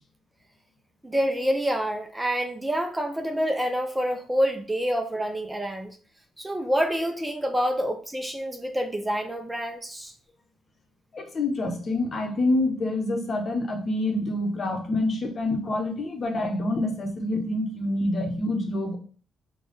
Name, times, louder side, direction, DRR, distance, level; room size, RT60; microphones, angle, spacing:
voice 1, 1.0-6.0 6.4-10.1, equal, 10° right, 0.5 m, -27 dB
voice 2, 11.1-19.0, left 2 dB, 45° left, 0.8 m, -27 dB
3.2 x 2.3 x 4.0 m
cardioid pair, 85°, 0 cm